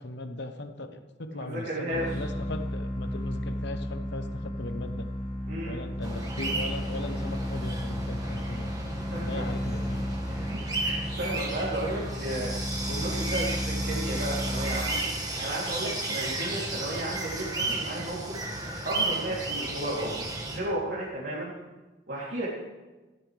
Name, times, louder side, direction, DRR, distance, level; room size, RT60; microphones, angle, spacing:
voice 1, 0.0-5.1 5.6-8.8 9.1-10.1, left 2 dB, 65° left, 8 dB, 1.1 m, -38 dB
voice 2, 1.3-2.0 5.5-5.8 9.1-9.4 10.4-10.5 10.8-12.5 12.9-15.0 15.4-18.4 18.8-21.5 22.1-22.5, right 1 dB, 60° right, -7 dB, 3.3 m, -33 dB
sound 1, 1.9-15.3, equal, 45° left, 1.5 m, -33 dB
sound 2, 6.0-20.6, right 2 dB, 20° right, 1.9 m, -34 dB
15.5 x 14.0 x 3.5 m, 1.2 s
head